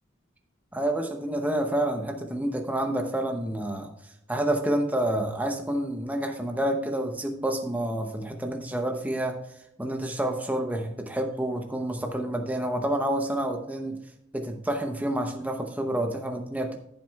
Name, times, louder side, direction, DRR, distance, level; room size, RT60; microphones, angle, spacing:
voice 1, 0.7-3.9 4.3-9.4 9.8-14.0 14.3-16.8, right 1 dB, 10° right, 3 dB, 0.7 m, -28 dB
14.0 x 7.5 x 2.3 m, 0.81 s
head